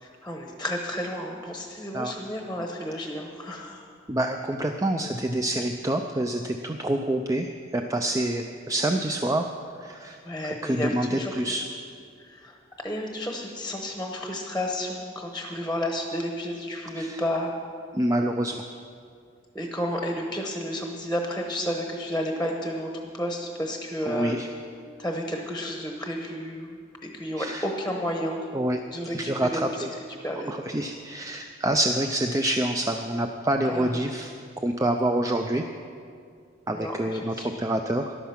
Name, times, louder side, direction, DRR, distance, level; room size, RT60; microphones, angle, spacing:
voice 1, 0.0-3.9 10.2-11.4 12.2-12.6 12.8-17.5 19.5-24.4 25.0-28.4 28.9-29.8 30.2-30.5 33.6-34.1 36.7-37.5, equal, 5° left, 2 dB, 1.0 m, -31 dB
voice 2, 4.1-9.5 9.8-11.6 17.0-17.2 17.9-18.6 24.1-24.5 27.4-27.6 28.5-28.8 29.1-29.9 30.5-35.6 36.7-38.2, right 1 dB, 15° right, 5 dB, 0.4 m, -27 dB
14.0 x 11.0 x 5.9 m, 2.3 s
head